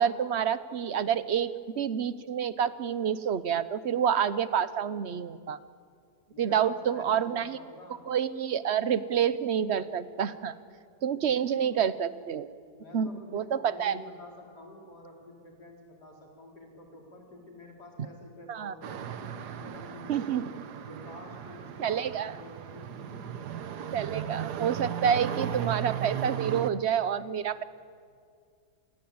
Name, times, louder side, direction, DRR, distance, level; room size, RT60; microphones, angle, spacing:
voice 1, 0.0-1.5 1.8-5.6 6.4-7.6 8.1-10.6 11.0-12.5 12.9-14.0 18.5-18.7 20.1-20.6 21.8-22.3 23.9-27.6, right 8 dB, 50° right, 15 dB, 1.0 m, -28 dB
voice 2, 6.3-8.1 11.1-11.8 12.6-20.6 20.9-23.5 23.9-24.1 25.0-25.5, left 1 dB, 85° left, 0 dB, 4.9 m, -49 dB
sound 1, 18.8-26.7, right 9 dB, 90° right, 1.6 m, -36 dB
27.5 x 20.5 x 8.7 m, 2.2 s
omnidirectional pair, 1.7 m